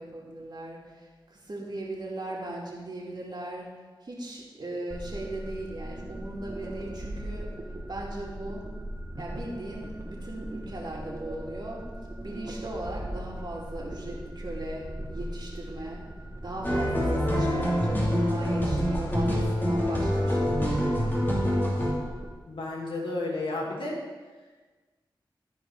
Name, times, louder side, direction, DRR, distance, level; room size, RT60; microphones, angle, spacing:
voice 1, 0.0-3.7 4.0-7.5 7.9-8.6 9.2-11.8 12.2-16.0 16.4-21.4, right 1 dB, 55° right, -3 dB, 2.6 m, -38 dB
sound 1, 4.9-22.4, right 1 dB, 35° right, 1.6 m, -39 dB
sound 2, 16.6-21.9, equal, 25° left, 2.9 m, -26 dB
voice 2, 22.5-24.0, left 2 dB, 75° left, -2 dB, 2.1 m, -32 dB
13.5 x 4.8 x 4.7 m, 1.4 s
cardioid pair, 45°, 9 cm